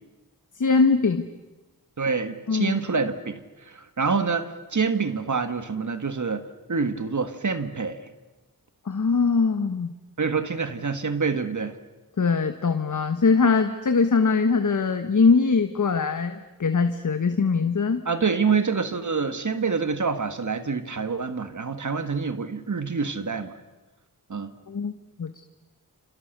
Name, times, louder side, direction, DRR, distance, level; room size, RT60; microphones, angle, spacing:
voice 1, 0.6-1.3 2.5-2.8 8.8-9.9 12.2-18.0 24.7-25.4, left 4 dB, 55° left, 8 dB, 1.4 m, -22 dB
voice 2, 2.0-8.0 10.2-11.8 18.1-23.5 24.3-24.5, right 5 dB, 55° right, 10 dB, 1.8 m, -26 dB
27.5 x 27.0 x 6.8 m, 1.1 s
wide cardioid pair, 70°, 36 cm